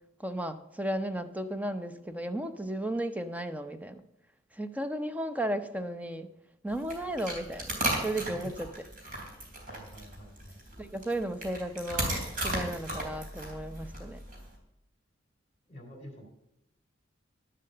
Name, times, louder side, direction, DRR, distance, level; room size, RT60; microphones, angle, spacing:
voice 1, 0.2-4.0 4.5-6.3 6.6-8.7 10.8-12.2 12.4-14.2, right 1 dB, 10° right, 9 dB, 0.7 m, -34 dB
sound 1, 6.7-14.6, right 1 dB, 45° right, 3.5 m, -36 dB
voice 2, 9.7-10.6 15.7-16.3, equal, 35° left, 3 dB, 3.4 m, -46 dB
11.5 x 7.4 x 6.8 m, 0.85 s
head